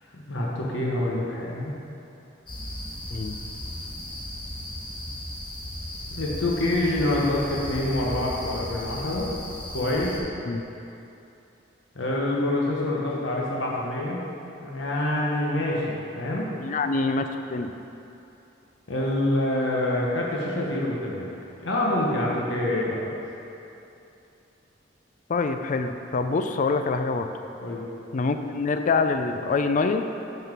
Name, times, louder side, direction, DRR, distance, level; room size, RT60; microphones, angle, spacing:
voice 1, 0.1-1.7 6.1-9.3 9.7-10.2 11.9-14.2 14.6-16.5 18.9-21.3 21.6-23.1 27.6-27.8, left 1 dB, 85° left, -4 dB, 1.1 m, -26 dB
sound 1, 2.5-10.2, left 1 dB, 25° left, 1.1 m, -36 dB
voice 2, 16.6-17.7 25.3-27.3 28.1-30.0, left 4 dB, 45° left, 7 dB, 0.4 m, -25 dB
5.7 x 5.5 x 5.9 m, 2.8 s
head